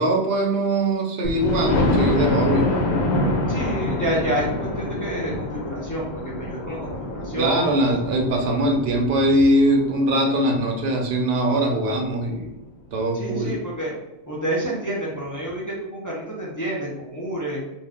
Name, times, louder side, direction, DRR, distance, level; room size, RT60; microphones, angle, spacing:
voice 1, 0.0-2.7 7.4-12.5 12.9-13.6, right 1 dB, 70° right, 2 dB, 0.8 m, -21 dB
Thunder, 1.2-11.0 11.5-11.6 12.0-12.1 12.4-12.5, left 2 dB, 85° left, 0.9 m, -26 dB
voice 2, 3.5-7.7 13.1-14.0 14.3-17.6, right 1 dB, 20° left, -6 dB, 0.6 m, -29 dB
2.6 x 2.3 x 3.4 m, 0.91 s
omnidirectional pair, 1.1 m